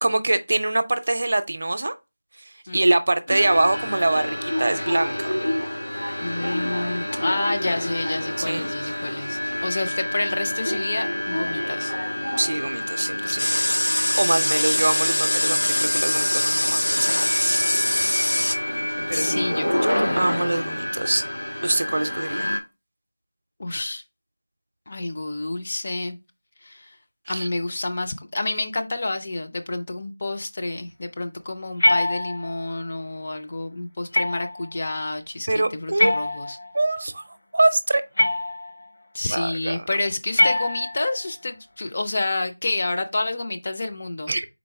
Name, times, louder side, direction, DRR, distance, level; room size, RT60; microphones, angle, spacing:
voice 1, 0.0-1.9 2.7-5.3 8.5-8.7 12.4-17.6 19.1-21.2 21.6-22.5 27.3-27.5 35.5-36.2 36.7-37.3 37.5-38.0 39.3-39.8 44.3-44.5, right 2 dB, 45° right, 0.5 m, -24 dB
sound 1, 3.3-22.6, left 1 dB, 65° left, 1.7 m, -28 dB
voice 2, 6.2-11.9 13.3-13.4 14.6-14.8 19.1-19.7 20.0-20.7 23.6-24.0 24.9-26.2 26.6-27.0 27.3-36.6 39.1-44.3, left 2 dB, 30° left, 0.4 m, -29 dB
sound 2, 13.4-18.6, left 1 dB, 85° left, 0.6 m, -23 dB
sound 3, 31.8-32.7 34.1-34.7 36.0-36.9 38.2-38.9 40.3-41.2, left 1 dB, 50° left, 0.7 m, -23 dB
3.9 x 2.9 x 4.6 m
figure-of-eight pair, 175°, 0 cm